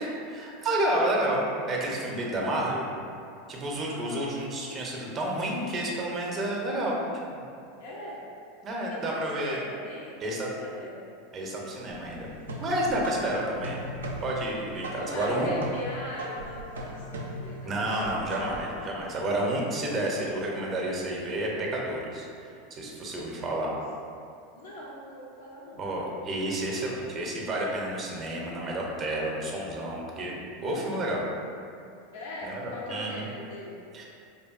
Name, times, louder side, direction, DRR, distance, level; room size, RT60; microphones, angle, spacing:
voice 1, 0.0-2.9 3.5-7.4 8.6-9.6 10.2-10.5 11.3-12.3 12.6-13.8 14.2-15.5 17.6-23.7 25.8-31.2 32.4-33.3 33.9-34.0, right 1 dB, 30° right, -2 dB, 0.5 m, -30 dB
voice 2, 3.9-4.3 7.8-8.2 8.9-11.0 15.0-17.8 18.1-18.3 23.1-23.7 24.5-25.9 32.1-33.8, left 1 dB, 70° left, -5 dB, 0.4 m, -41 dB
sound 1, 11.9-18.8, equal, 85° right, 0.3 m, -38 dB
2.6 x 2.4 x 2.3 m, 2.5 s
hypercardioid pair, 95°, 0 cm